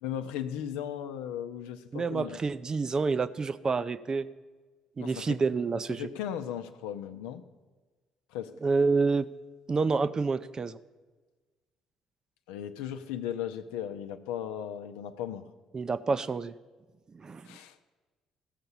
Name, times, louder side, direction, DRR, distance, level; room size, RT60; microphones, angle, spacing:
voice 1, 0.0-2.4 5.0-5.4 6.0-7.4 8.3-8.5 12.5-15.5 17.4-17.8, left 10 dB, 70° left, 8 dB, 0.7 m, -36 dB
voice 2, 1.9-4.3 5.0-6.1 8.6-9.3 9.7-10.8 15.7-16.5 17.1-17.4, right 4 dB, 35° right, 14 dB, 0.5 m, -28 dB
15.5 x 6.8 x 5.5 m, 1.3 s
hypercardioid pair, 50°, 2 cm